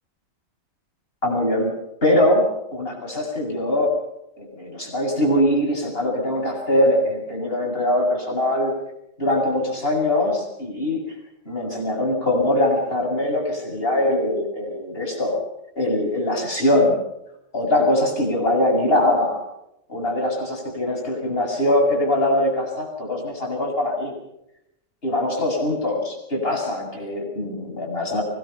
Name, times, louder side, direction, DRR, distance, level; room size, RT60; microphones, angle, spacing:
voice 1, 1.2-1.7 2.0-3.9 4.4-8.7 9.2-11.1 11.5-15.4 15.7-17.0 17.5-19.4 19.9-24.1 25.0-28.2, left 1 dB, 45° left, 0 dB, 7.7 m, -22 dB
24.0 x 21.5 x 5.9 m, 0.83 s
omnidirectional pair, 1.4 m